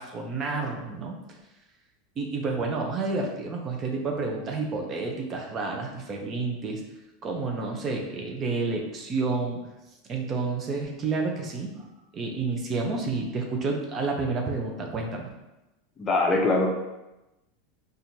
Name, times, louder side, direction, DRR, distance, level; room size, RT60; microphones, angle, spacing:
voice 1, 0.0-1.4 2.2-6.8 7.2-9.6 10.0-11.9 12.1-15.3, right 3 dB, 35° right, 1 dB, 0.6 m, -30 dB
voice 2, 16.0-16.7, left 2 dB, 25° left, 1 dB, 0.6 m, -22 dB
4.2 x 2.5 x 2.7 m, 0.98 s
supercardioid pair, 115°, 0 cm